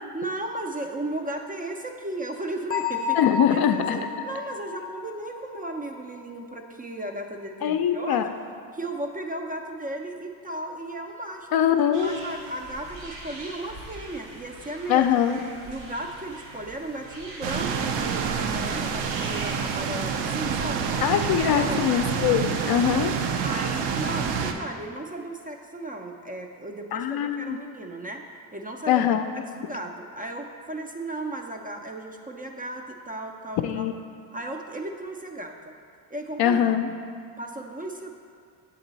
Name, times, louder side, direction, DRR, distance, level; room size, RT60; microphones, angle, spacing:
voice 1, 0.1-3.2 3.5-8.2 8.7-15.1 15.7-21.0 21.4-21.9 23.4-28.2 28.5-29.0 29.6-33.9 34.3-35.8 36.1-36.8 37.4-38.1, right 2 dB, 20° right, 3 dB, 0.4 m, -35 dB
Bell, 2.7-6.4, left 6 dB, 20° left, 0.7 m, -32 dB
voice 2, 3.2-4.0 7.6-8.3 11.5-12.1 14.9-15.4 21.0-23.2 26.9-27.6 28.9-29.3 33.6-33.9 36.4-36.9, left 9 dB, 50° left, 7 dB, 0.5 m, -22 dB
sound 1, 11.9-20.7, right 1 dB, 80° right, 1.5 m, -43 dB
sound 2, 17.4-24.5, right 6 dB, 60° right, 0.7 m, -27 dB
7.3 x 4.0 x 4.0 m, 2.2 s
hypercardioid pair, 55°, 49 cm